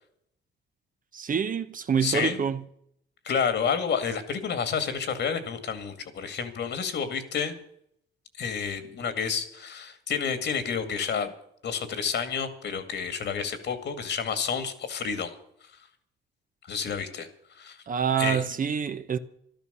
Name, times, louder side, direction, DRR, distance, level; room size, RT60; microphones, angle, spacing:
voice 1, 1.1-2.6 17.9-19.2, right 7 dB, 45° right, 1.0 m, -26 dB
voice 2, 2.0-2.4 3.2-7.5 8.4-11.3 11.6-15.3 16.7-17.3 17.6-17.8 18.2-18.4, left 6 dB, 60° left, 2.3 m, -30 dB
14.0 x 12.5 x 6.9 m
cardioid pair, 90°, 20 cm